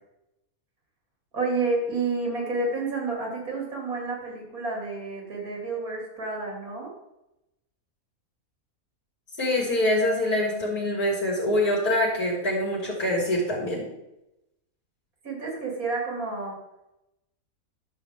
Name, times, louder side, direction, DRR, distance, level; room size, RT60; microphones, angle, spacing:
voice 1, 1.3-6.9 15.2-16.6, right 3 dB, 80° right, -2 dB, 3.1 m, -30 dB
voice 2, 9.4-13.9, left 1 dB, 90° left, -4 dB, 3.0 m, -25 dB
11.0 x 7.2 x 3.6 m, 0.89 s
omnidirectional pair, 1.5 m